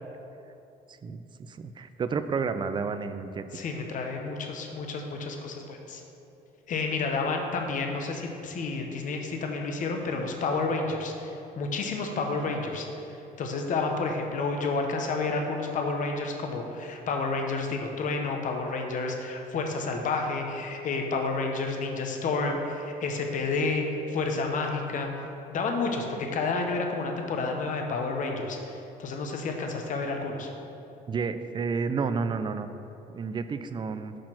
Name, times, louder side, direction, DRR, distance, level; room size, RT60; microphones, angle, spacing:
voice 1, 0.9-3.4 31.1-32.7 33.1-34.2, right 5 dB, 30° right, 10 dB, 0.3 m, -31 dB
voice 2, 3.5-6.0 6.7-25.1 25.5-30.5, left 3 dB, 50° left, 3 dB, 0.8 m, -30 dB
6.3 x 4.3 x 5.8 m, 2.8 s
cardioid pair, 110°, 17 cm